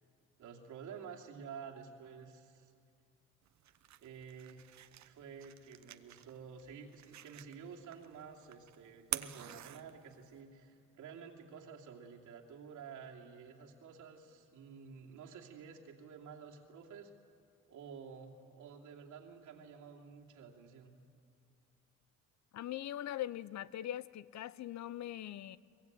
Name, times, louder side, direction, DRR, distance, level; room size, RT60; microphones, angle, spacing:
voice 1, 0.4-2.7 4.0-4.6 4.9-17.1 17.7-21.0, right 6 dB, 80° right, 0 dB, 2.8 m, -51 dB
sound 1, 3.4-10.4, right 11 dB, 65° right, 1.0 m, -47 dB
voice 2, 22.5-25.6, left 12 dB, 65° left, 18 dB, 0.7 m, -41 dB
23.5 x 20.0 x 9.3 m, 2.4 s
cardioid pair, 90°, 30 cm